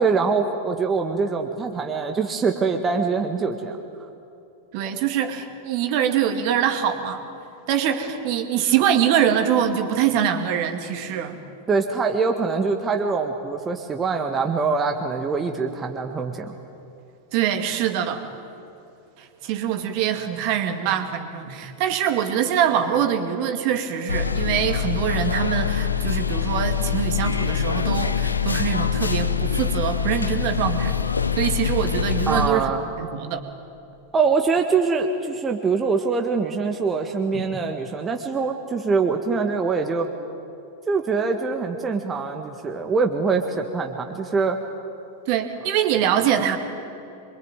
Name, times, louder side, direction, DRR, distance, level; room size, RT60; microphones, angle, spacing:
voice 1, 0.0-3.8 11.7-16.5 32.3-32.9 34.1-40.1 40.9-44.6, right 4 dB, 20° right, 3 dB, 1.8 m, -24 dB
voice 2, 4.7-7.2 7.7-11.4 17.3-18.2 19.2-31.0 31.4-32.7 33.0-33.4 37.3-37.4 45.3-46.6, right 9 dB, 45° right, 6 dB, 2.4 m, -24 dB
sound 1, 24.1-32.5, left 8 dB, 80° left, 1.1 m, -24 dB
26.0 x 23.5 x 9.2 m, 2.7 s
figure-of-eight pair, 90°, 0 cm